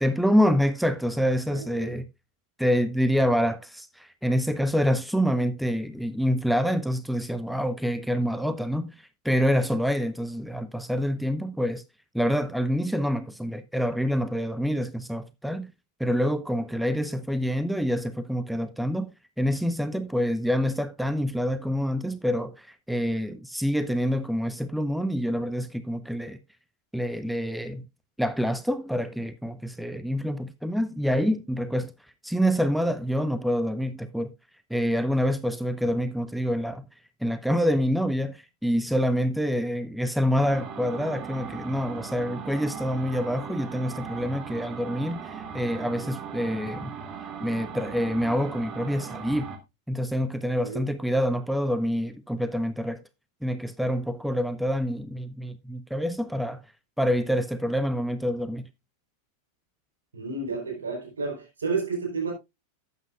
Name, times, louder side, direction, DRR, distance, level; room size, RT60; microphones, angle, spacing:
voice 1, 0.0-2.1 2.6-11.8 12.1-15.7 16.0-19.1 19.4-26.4 26.9-27.9 28.2-31.9 32.2-34.3 34.7-36.9 37.2-46.9 47.4-49.5 49.9-53.0 53.4-56.6 57.0-58.7, equal, ahead, 0.6 m, -26 dB
voice 2, 1.5-1.9 50.6-50.8 60.1-62.3, right 4 dB, 70° right, 4.0 m, -31 dB
sound 1, 40.3-49.6, right 6 dB, 30° right, 1.7 m, -38 dB
12.0 x 8.2 x 2.4 m
figure-of-eight pair, 90°, 0 cm